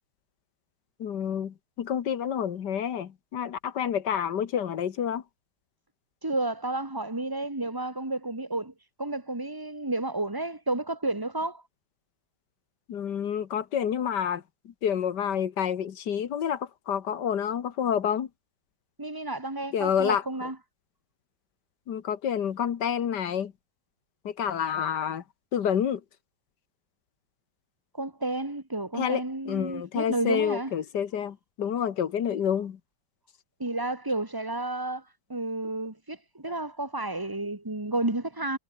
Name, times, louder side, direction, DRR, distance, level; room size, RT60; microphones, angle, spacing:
voice 1, 1.0-5.2 12.9-18.3 19.7-20.5 21.9-23.5 24.2-25.2 25.5-26.0 29.0-32.8, left 8 dB, 65° left, 1.8 m, -29 dB
voice 2, 6.2-8.7 9.0-11.6 19.0-20.6 27.9-30.7 33.6-35.0 35.3-38.6, right 2 dB, 10° right, 2.6 m, -31 dB
omnidirectional pair, 2.0 m